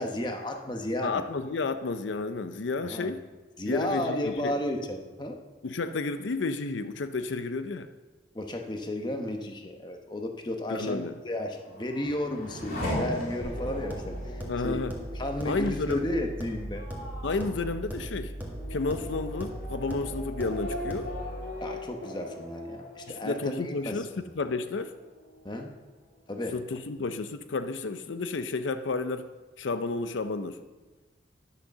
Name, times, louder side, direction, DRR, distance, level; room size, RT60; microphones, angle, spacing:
voice 1, 0.0-1.3 2.8-3.1 3.6-5.4 8.3-14.8 15.1-16.9 21.6-24.0 25.4-25.7 26.3-26.6, left 1 dB, 25° left, 4 dB, 1.0 m, -33 dB
voice 2, 1.0-3.2 3.7-4.5 5.6-7.9 10.7-11.2 14.5-14.9 15.5-16.0 17.2-18.4 18.7-21.1 23.1-24.9 26.5-29.3 29.6-30.6, left 3 dB, 80° left, 10 dB, 0.5 m, -31 dB
Race car auto racing / Accelerating revving vroom, 11.3-24.5 24.9-25.6, left 1 dB, 50° left, 2.7 m, -39 dB
sound 1, 13.4-21.4, right 1 dB, 10° right, 1.7 m, -38 dB
11.0 x 6.5 x 6.7 m, 1.3 s
head